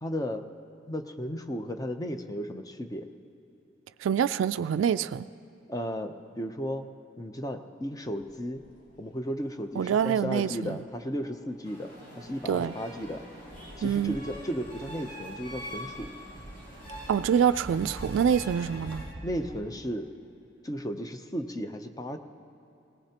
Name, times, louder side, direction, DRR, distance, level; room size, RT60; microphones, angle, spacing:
voice 1, 0.0-0.4 0.9-3.1 5.7-6.9 7.2-8.6 9.0-13.2 13.8-16.1 19.2-20.1 20.6-22.2, equal, 20° left, 0.7 m, -34 dB
voice 2, 4.0-5.3 9.8-10.8 12.5-12.7 13.8-14.2 17.1-19.0, right 8 dB, 80° right, 0.3 m, -26 dB
sound 1, 8.0-19.6, right 1 dB, 75° left, 3.5 m, -48 dB
sound 2, 11.6-19.0, equal, 50° left, 4.2 m, -44 dB
21.0 x 18.5 x 2.9 m
head